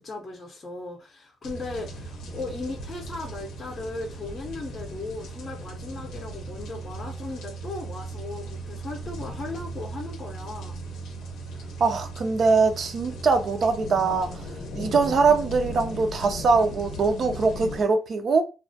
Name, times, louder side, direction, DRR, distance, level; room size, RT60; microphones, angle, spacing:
voice 1, 0.0-10.8, left 2 dB, 35° left, 0.5 m, -37 dB
sound 1, 1.4-17.8, left 2 dB, 80° left, 0.5 m, -40 dB
sound 2, 1.4-17.5, right 5 dB, 75° right, 0.9 m, -40 dB
voice 2, 11.8-14.4 14.7-18.4, right 4 dB, 50° right, 0.4 m, -22 dB
2.3 x 2.1 x 2.6 m
cardioid pair, 90°, 0 cm